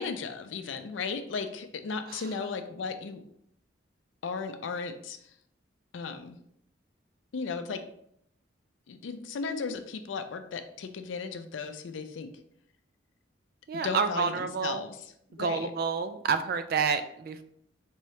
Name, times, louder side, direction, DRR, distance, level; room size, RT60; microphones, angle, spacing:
voice 1, 0.0-3.2 4.2-5.2 5.9-6.4 7.3-7.8 8.9-12.3 13.8-14.9 15.3-15.7, left 5 dB, 85° left, 8 dB, 0.4 m, -35 dB
voice 2, 13.7-14.8 15.4-17.4, right 5 dB, 50° right, 9 dB, 0.3 m, -29 dB
4.5 x 3.1 x 2.8 m, 0.71 s
head